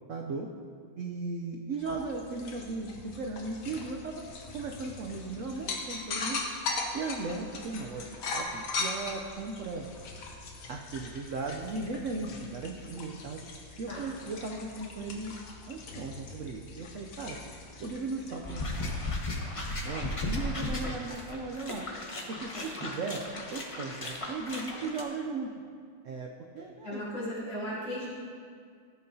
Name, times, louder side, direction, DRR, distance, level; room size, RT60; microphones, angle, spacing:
voice 1, 0.1-0.5 1.0-4.3 4.5-6.4 6.9-9.9 10.7-13.4 13.8-15.3 15.7-17.4 17.8-18.9 19.3-21.8 22.3-23.2 23.5-25.5 26.0-27.0, right 3 dB, 80° right, 2 dB, 0.7 m, -37 dB
sound 1, 1.8-20.2, left 3 dB, 65° left, 1.5 m, -40 dB
sound 2, 18.4-25.0, left 2 dB, 40° left, 0.4 m, -36 dB
voice 2, 26.8-28.1, equal, 80° left, -9 dB, 3.7 m, -36 dB
14.5 x 8.6 x 2.7 m, 2.1 s
omnidirectional pair, 2.1 m